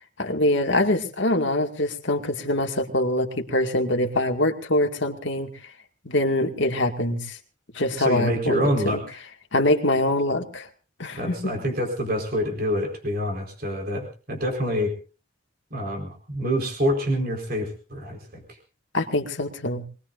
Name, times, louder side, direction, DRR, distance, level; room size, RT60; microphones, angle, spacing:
voice 1, 0.2-5.5 6.0-7.4 7.7-9.0 9.5-10.7 11.0-11.5 18.9-19.8, left 1 dB, 65° left, 3 dB, 2.2 m, -24 dB
voice 2, 8.0-9.0 11.2-14.9 15.7-18.4, equal, 45° right, 2 dB, 4.5 m, -26 dB
24.0 x 20.0 x 2.6 m, 0.36 s
head